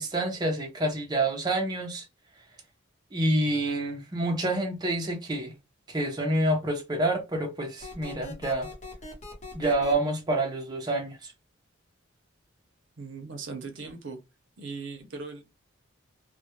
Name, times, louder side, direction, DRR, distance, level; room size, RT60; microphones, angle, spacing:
voice 1, 0.0-2.0 3.1-5.5 5.9-8.7 9.5-11.3, right 1 dB, 20° right, 0.5 m, -28 dB
sound 1, 7.8-9.9, left 2 dB, 40° left, 0.9 m, -42 dB
voice 2, 13.0-14.2 14.6-15.4, right 4 dB, 65° right, 0.7 m, -39 dB
2.2 x 2.1 x 2.8 m
head